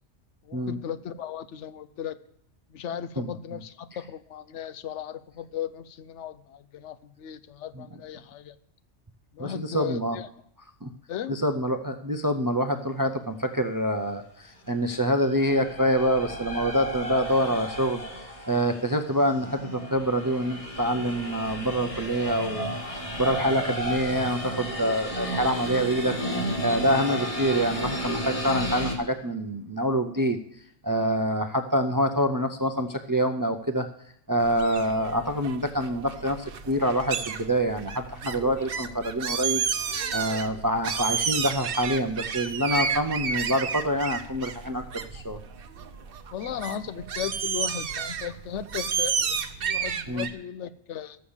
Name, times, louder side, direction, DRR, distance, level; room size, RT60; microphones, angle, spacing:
voice 1, 0.5-2.2 2.7-8.5 9.3-10.3 11.1-11.3 46.3-51.2, left 9 dB, 85° left, 13 dB, 1.0 m, -36 dB
voice 2, 9.4-10.2 10.8-10.9 11.3-18.0 18.5-30.4 30.8-33.9 34.3-39.6 40.1-44.8 45.1-45.4 50.1-50.3, equal, 30° right, 8 dB, 0.4 m, -26 dB
sound 1, 14.9-28.9, equal, 30° left, 1.8 m, -33 dB
sound 2, 34.4-50.3, right 6 dB, 55° right, 0.9 m, -32 dB
13.0 x 6.5 x 7.2 m, 0.70 s
omnidirectional pair, 1.2 m